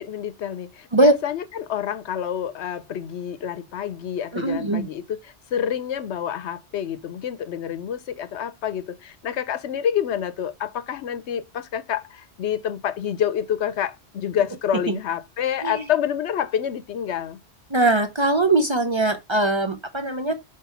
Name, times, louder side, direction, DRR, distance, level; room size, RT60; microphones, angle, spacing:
voice 1, 0.0-5.2 5.5-17.4, left 9 dB, 85° left, 1.0 m, -28 dB
voice 2, 4.3-4.9 14.9-15.0 15.6-15.8 17.7-20.3, right 2 dB, 35° right, 0.6 m, -21 dB
5.8 x 3.4 x 5.6 m
omnidirectional pair, 1.1 m